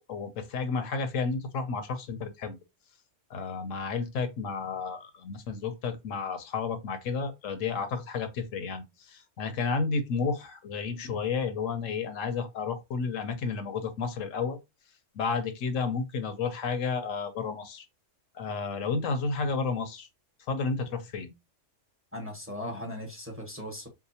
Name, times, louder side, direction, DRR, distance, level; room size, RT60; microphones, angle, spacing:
voice 1, 0.1-2.6 3.3-14.6 15.1-17.8 18.3-20.1 20.5-21.3, left 4 dB, 80° left, 1.1 m, -31 dB
voice 2, 22.1-23.9, left 1 dB, 10° right, 1.0 m, -38 dB
4.8 x 2.1 x 2.7 m
omnidirectional pair, 1.3 m